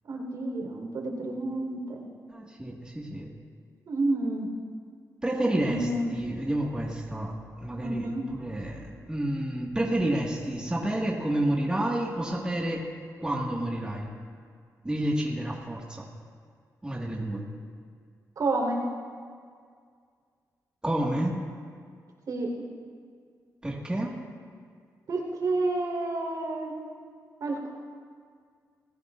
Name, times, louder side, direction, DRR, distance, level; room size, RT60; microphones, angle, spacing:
voice 1, 0.1-2.1 3.9-4.5 5.6-6.1 7.8-8.2 18.4-18.8 22.3-22.5 25.1-26.7 27.4-27.7, right 2 dB, 65° right, -1 dB, 4.3 m, -30 dB
voice 2, 2.3-3.3 5.2-7.3 7.6-8.0 8.3-12.9 13.2-14.1 14.8-16.1 16.8-17.4 20.8-21.4 23.6-24.1, right 1 dB, 15° right, -3 dB, 1.9 m, -29 dB
26.5 x 15.0 x 2.6 m, 2.1 s
cardioid pair, 105°, 7 cm